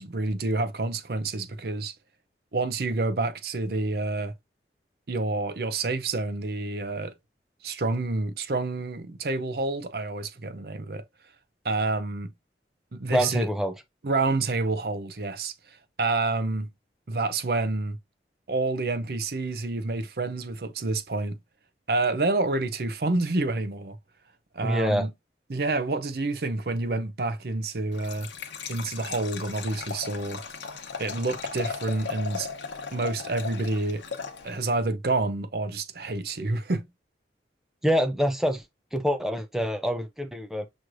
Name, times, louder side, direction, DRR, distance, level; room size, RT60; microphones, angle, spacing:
voice 1, 0.0-1.9 2.5-4.3 5.1-7.1 7.6-11.0 11.6-12.3 12.9-13.5 14.0-15.5 16.0-16.7 17.1-18.0 18.5-21.3 21.9-24.0 24.5-25.1 25.5-28.3 28.7-30.4 31.0-32.5 32.9-34.0 34.4-36.8, right 3 dB, 60° right, 0.6 m, -28 dB
voice 2, 13.1-13.7 24.6-25.1 37.8-38.6 38.9-40.7, equal, ahead, 0.5 m, -25 dB
Liquid, 27.9-34.8, left 5 dB, 85° left, 0.9 m, -37 dB
6.2 x 3.1 x 2.6 m
head